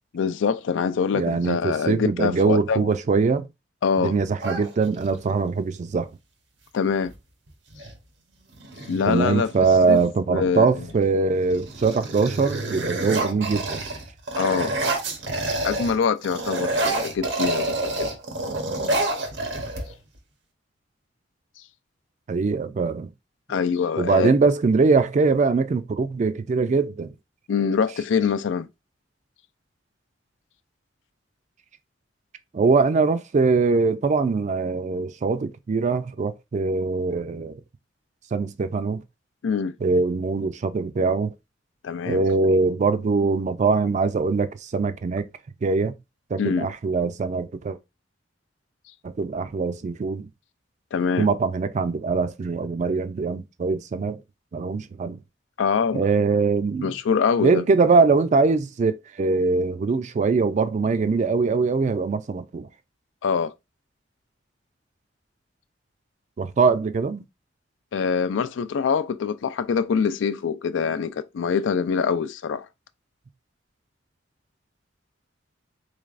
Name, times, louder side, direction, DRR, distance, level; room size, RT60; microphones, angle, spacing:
voice 1, 0.1-2.9 3.8-4.2 6.7-7.1 8.9-9.5 9.9-10.0 10.3-10.9 14.4-14.7 15.6-18.2 23.5-24.4 27.5-28.7 39.4-39.8 41.8-42.3 46.4-46.7 50.9-51.3 55.6-56.1 56.8-57.6 63.2-63.5 67.9-72.7, left 6 dB, 90° left, 0.4 m, -24 dB
voice 2, 1.1-3.5 4.0-6.1 9.1-13.8 22.3-23.1 24.0-27.1 32.5-37.6 38.3-39.0 39.8-41.3 42.1-45.3 45.6-46.0 46.3-47.8 49.0-50.3 51.2-54.2 54.5-55.2 55.9-56.9 57.4-62.7 66.4-67.2, right 4 dB, 40° right, 0.3 m, -22 dB
sound 1, 4.4-5.3 7.0-7.2 7.5-8.0 8.5-10.0 10.7-11.1 11.4-16.0 16.2-20.2, right 2 dB, 70° right, 0.9 m, -28 dB
3.9 x 3.2 x 2.4 m
head